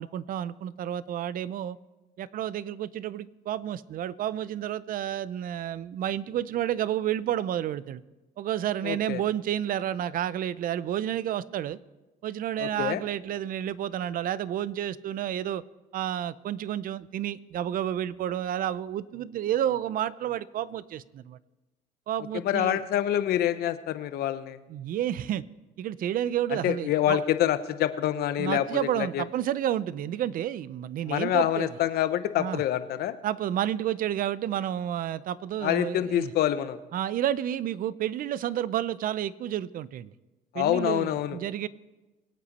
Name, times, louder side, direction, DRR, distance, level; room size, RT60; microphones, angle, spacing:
voice 1, 0.0-1.8 2.2-8.0 8.4-11.8 12.2-15.6 15.9-21.4 22.1-22.8 24.7-25.4 25.8-27.2 28.4-31.7 32.4-32.6 33.2-36.3 36.9-40.1 40.5-41.7, right 11 dB, 55° right, 18 dB, 0.5 m, -30 dB
voice 2, 8.8-9.2 12.6-13.0 22.3-24.6 26.6-29.2 31.1-33.2 35.6-36.8 40.5-41.4, left 12 dB, 70° left, 12 dB, 0.9 m, -26 dB
23.0 x 8.5 x 4.2 m, 1.1 s
cardioid pair, 110°, 17 cm